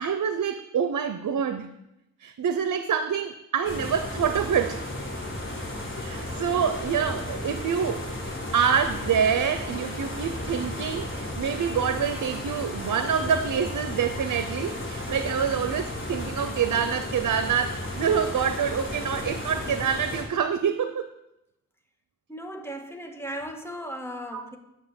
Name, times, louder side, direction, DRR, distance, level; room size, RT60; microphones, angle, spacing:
voice 1, 0.0-1.7 2.2-4.8 6.0-8.1 8.5-21.1 24.3-24.5, right 7 dB, 90° right, 9 dB, 0.7 m, -26 dB
sound 1, 3.6-20.2, left 1 dB, 40° left, 4.0 m, -34 dB
voice 2, 22.3-24.6, equal, 10° left, 4 dB, 1.7 m, -36 dB
9.9 x 6.6 x 7.9 m, 0.88 s
cardioid pair, 65°, 31 cm